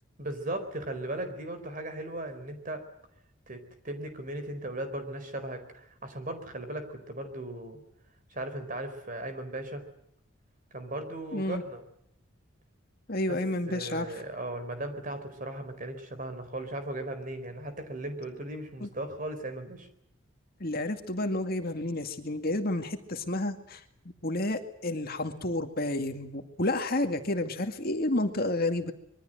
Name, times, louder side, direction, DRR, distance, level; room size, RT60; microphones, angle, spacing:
voice 1, 0.2-2.8 3.5-7.8 8.3-9.8 10.7-11.8 13.3-13.4 13.7-19.9, right 1 dB, 40° right, 9 dB, 4.6 m, -37 dB
voice 2, 11.3-11.6 13.1-14.1 18.8-18.9 20.6-23.8 24.2-28.9, left 1 dB, 45° left, 6 dB, 2.2 m, -30 dB
26.0 x 23.0 x 7.9 m, 0.74 s
head